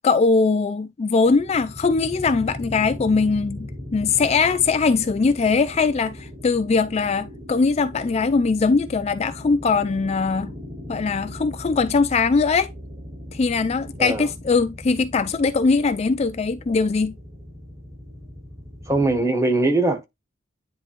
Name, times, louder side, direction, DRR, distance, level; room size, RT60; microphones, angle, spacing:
voice 1, 0.0-3.7 3.9-10.5 10.9-12.7 13.3-17.1, left 4 dB, 30° left, 0.3 m, -21 dB
sound 1, 1.3-19.2, left 1 dB, 35° right, 2.5 m, -39 dB
voice 2, 18.9-20.0, right 2 dB, 15° right, 1.0 m, -21 dB
9.9 x 3.4 x 3.0 m
head